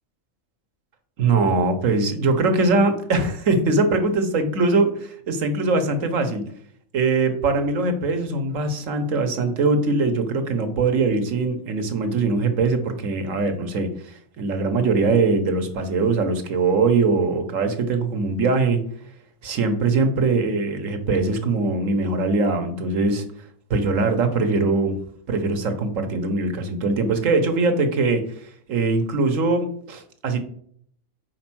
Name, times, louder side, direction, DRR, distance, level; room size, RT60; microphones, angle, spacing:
voice 1, 1.2-6.4 6.9-18.8 19.4-23.2 23.7-25.0 25.3-28.3 28.7-30.4, right 3 dB, 65° right, 7 dB, 1.3 m, -22 dB
4.9 x 4.3 x 6.0 m, 0.62 s
omnidirectional pair, 1.5 m